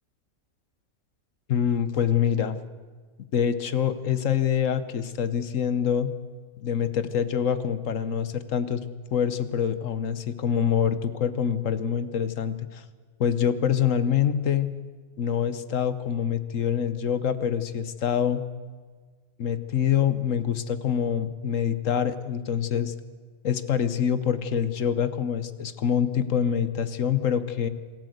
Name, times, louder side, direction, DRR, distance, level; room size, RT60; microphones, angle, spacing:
voice 1, 1.5-2.6 3.3-6.1 6.6-8.8 9.1-12.8 13.2-14.7 15.2-18.4 19.4-22.9 23.4-27.7, left 8 dB, 70° left, 13 dB, 1.3 m, -25 dB
26.0 x 13.5 x 8.0 m, 1.5 s
omnidirectional pair, 1.4 m